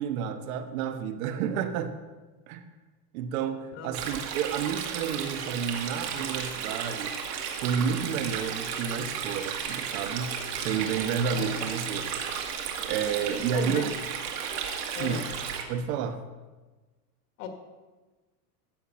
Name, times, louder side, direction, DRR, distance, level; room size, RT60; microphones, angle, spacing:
voice 1, 0.0-1.9 2.5-2.7 3.1-7.2 7.6-12.1 12.8-13.9 14.9-15.3 15.7-16.2, right 7 dB, 60° right, 8 dB, 1.1 m, -30 dB
Stream, 3.9-15.6, right 7 dB, 90° right, 2.1 m, -34 dB
voice 2, 11.3-11.7 13.5-13.9 14.9-15.3 17.4-17.5, left 6 dB, 50° left, 4 dB, 1.9 m, -36 dB
15.0 x 6.4 x 5.7 m, 1.2 s
supercardioid pair, 175°, 47 cm